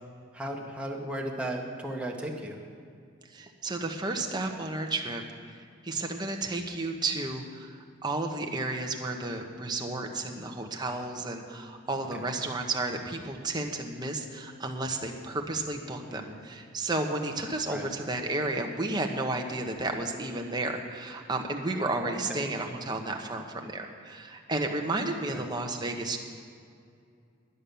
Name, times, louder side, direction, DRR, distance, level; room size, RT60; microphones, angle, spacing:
voice 1, 0.3-2.6 10.1-10.4 12.1-12.2 16.1-16.4 17.7-17.9 22.3-22.5 25.3-25.4, right 1 dB, 5° right, -1 dB, 1.3 m, -36 dB
voice 2, 3.3-5.2 5.8-26.2, right 2 dB, 20° right, 3 dB, 1.0 m, -32 dB
11.0 x 10.0 x 6.9 m, 2.3 s
head